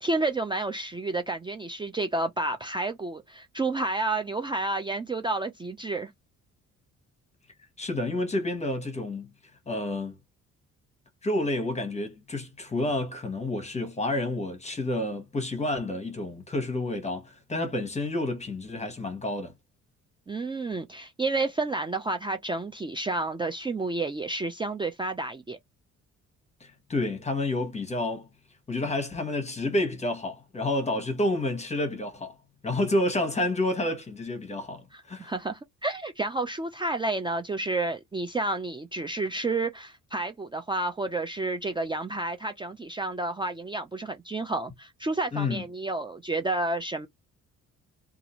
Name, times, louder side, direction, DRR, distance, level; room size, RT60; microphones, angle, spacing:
voice 1, 0.0-6.1 20.3-25.6 34.9-47.1, right 2 dB, 15° right, 0.4 m, -30 dB
voice 2, 7.8-9.3 9.7-10.1 11.2-19.5 26.6-28.3 28.7-32.3 32.6-35.3 45.3-45.6, left 2 dB, 20° left, 1.1 m, -29 dB
2.6 x 2.4 x 3.0 m
cardioid pair, 90°, 30 cm